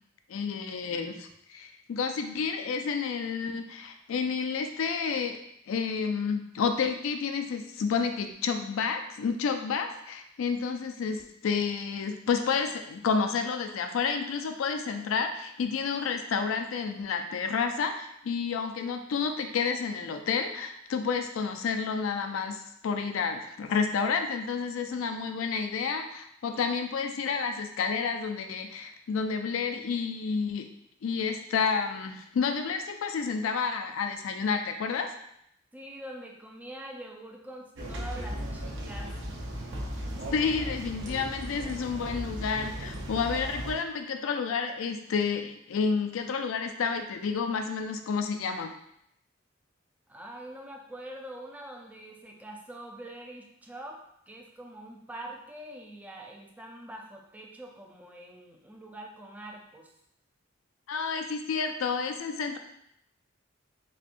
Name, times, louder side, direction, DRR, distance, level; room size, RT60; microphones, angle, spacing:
voice 1, 0.3-5.4 5.7-30.7 31.0-35.1 40.3-48.7 60.9-62.6, left 5 dB, 75° left, 6 dB, 0.4 m, -30 dB
voice 2, 35.7-39.1 50.1-59.9, right 1 dB, 10° right, 1 dB, 0.4 m, -44 dB
sound 1, 37.7-43.7, equal, 65° right, 0.6 m, -36 dB
4.2 x 2.2 x 2.5 m, 0.74 s
head